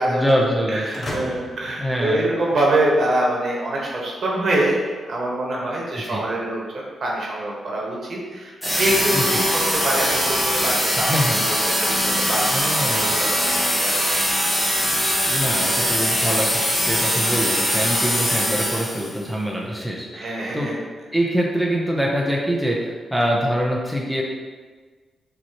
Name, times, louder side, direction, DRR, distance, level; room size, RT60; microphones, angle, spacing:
voice 1, 0.1-1.1 1.8-2.3 6.0-6.2 9.1-9.4 11.0-11.4 12.5-13.1 15.3-20.7 21.1-24.2, equal, 5° right, -3 dB, 0.8 m, -24 dB
voice 2, 0.7-6.6 7.0-11.1 11.4-13.4 13.7-14.2 20.1-20.7, right 1 dB, 60° right, -3 dB, 1.3 m, -25 dB
sound 1, 0.9-2.9, left 1 dB, 40° left, 1.1 m, -35 dB
sound 2, 8.6-19.2, equal, 10° left, 1.3 m, -21 dB
5.9 x 3.0 x 3.0 m, 1.4 s
cardioid pair, 75°, 0 cm